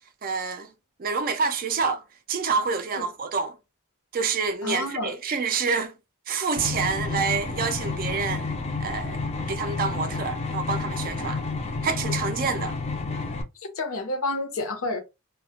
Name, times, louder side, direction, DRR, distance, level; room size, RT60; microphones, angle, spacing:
voice 1, 0.2-0.7 1.0-2.0 2.3-3.6 4.1-5.9 6.3-8.5 8.8-9.2 9.5-11.4 11.8-12.7, right 5 dB, 40° right, 0.3 m, -27 dB
voice 2, 4.6-5.1 13.6-15.0, left 2 dB, 65° left, 0.6 m, -29 dB
sound 1, 6.6-13.4, left 3 dB, 30° left, 0.4 m, -30 dB
2.2 x 2.0 x 2.7 m
head